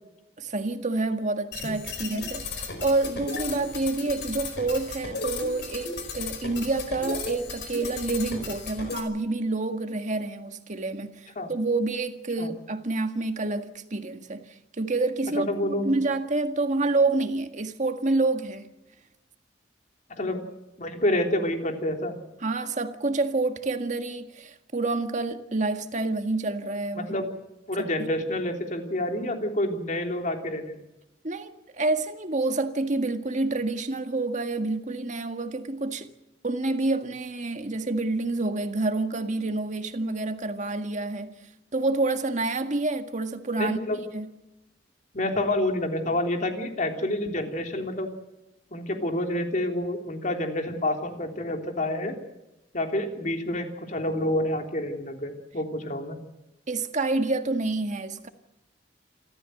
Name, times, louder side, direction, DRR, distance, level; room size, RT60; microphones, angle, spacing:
voice 1, 0.4-18.7 22.4-27.2 27.8-28.1 31.2-36.1 36.4-41.4 41.7-44.3 56.7-58.3, right 2 dB, 45° right, 1.8 m, -28 dB
sound 1, 1.5-9.0, left 3 dB, 65° left, 4.6 m, -35 dB
voice 2, 15.4-15.9 20.2-20.4 20.8-22.2 27.0-27.3 27.7-30.8 43.6-44.0 45.1-48.1 48.7-52.2 52.7-56.2, left 1 dB, 45° left, 3.4 m, -28 dB
28.0 x 14.0 x 7.9 m
head